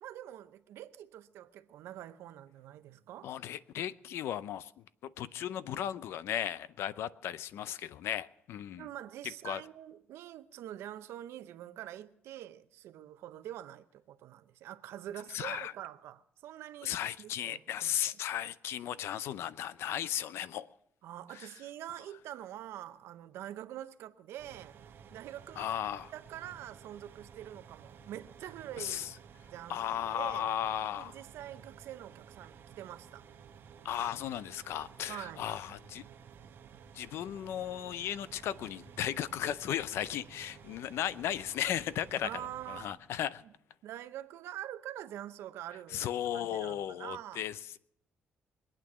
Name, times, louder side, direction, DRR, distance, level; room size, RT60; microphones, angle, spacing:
voice 1, 0.0-3.3 8.8-16.9 17.2-18.0 21.0-24.7 25.1-25.7 26.1-29.1 29.5-30.5 30.9-33.2 35.1-35.5 42.2-43.0 43.8-47.5, right 12 dB, 90° right, 0.7 m, -45 dB
voice 2, 3.2-8.9 9.4-9.6 15.3-15.7 16.8-20.7 21.3-21.5 25.6-26.1 28.8-29.1 29.7-31.2 33.8-36.0 36.9-43.4 45.9-47.8, left 11 dB, 80° left, 0.6 m, -36 dB
sound 1, 24.4-42.9, right 7 dB, 60° right, 1.1 m, -54 dB
22.0 x 9.0 x 6.1 m
cardioid pair, 135°, 4 cm